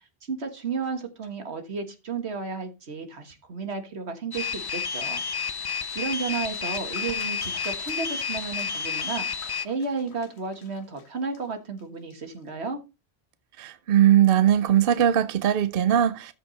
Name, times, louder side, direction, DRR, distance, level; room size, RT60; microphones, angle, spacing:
voice 1, 0.2-5.2 5.9-9.2 9.6-12.8, right 4 dB, 85° right, 1.8 m, -33 dB
sound 1, 4.3-9.6, left 6 dB, 40° left, 0.3 m, -30 dB
sound 2, 5.0-12.5, left 6 dB, 90° left, 1.3 m, -50 dB
voice 2, 13.6-16.3, right 10 dB, 65° right, 0.8 m, -20 dB
13.5 x 4.8 x 4.0 m
omnidirectional pair, 1.1 m